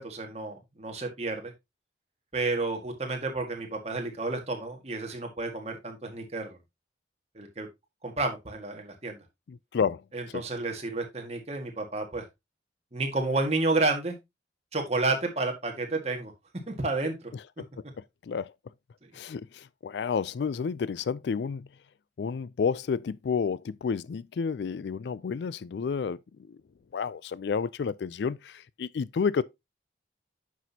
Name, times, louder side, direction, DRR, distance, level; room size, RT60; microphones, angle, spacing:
voice 1, 0.0-1.5 2.3-6.6 7.3-7.7 8.0-9.2 10.1-12.3 12.9-14.2 14.7-16.3 16.7-17.3 19.0-19.1, right 3 dB, 35° right, 1.7 m, -31 dB
voice 2, 9.5-10.0 10.3-10.4 17.6-17.7 18.2-18.5 19.1-21.7 22.2-26.2 26.5-26.6 26.9-29.4, left 6 dB, 70° left, 0.4 m, -30 dB
9.1 x 6.1 x 2.8 m
head